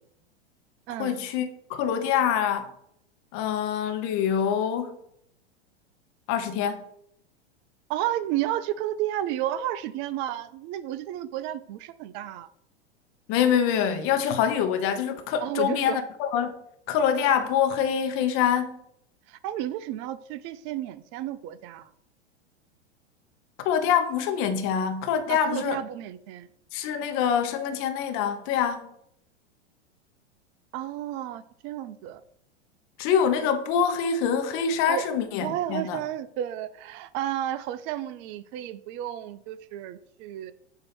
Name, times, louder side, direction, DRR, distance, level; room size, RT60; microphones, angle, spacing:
voice 1, 1.0-2.7 3.3-5.0 6.3-6.8 13.3-16.5 16.9-18.8 23.6-25.8 26.7-28.9 33.0-36.0, left 8 dB, 40° left, 0.9 m, -25 dB
voice 2, 7.9-12.5 15.4-16.0 19.3-21.9 25.3-26.5 30.7-32.2 34.9-35.1 35.4-40.5, right 12 dB, 35° right, 0.4 m, -32 dB
7.5 x 2.8 x 5.9 m
figure-of-eight pair, 95°, 34 cm